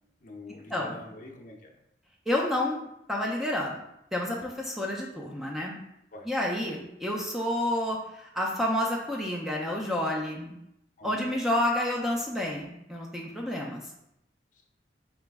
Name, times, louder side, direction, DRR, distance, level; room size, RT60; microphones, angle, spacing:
voice 1, 0.2-1.8 6.1-6.3 11.0-11.4 14.5-14.6, left 2 dB, 45° left, 0 dB, 0.6 m, -46 dB
voice 2, 2.3-3.8 4.1-5.8 6.3-10.6 11.0-13.9, left 1 dB, ahead, -2 dB, 0.4 m, -29 dB
3.9 x 3.0 x 3.5 m, 0.82 s
head